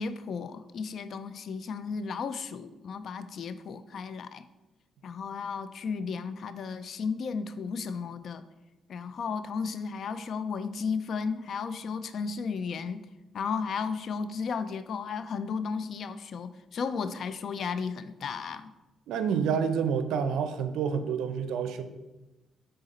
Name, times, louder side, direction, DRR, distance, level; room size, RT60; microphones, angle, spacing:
voice 1, 0.0-4.4 5.0-8.4 8.9-13.0 13.3-18.7, left 5 dB, 60° left, 12 dB, 0.4 m, -34 dB
voice 2, 19.1-21.8, right 7 dB, 85° right, 10 dB, 0.5 m, -28 dB
6.5 x 3.9 x 4.2 m, 1.0 s
cardioid pair, 90°, 0 cm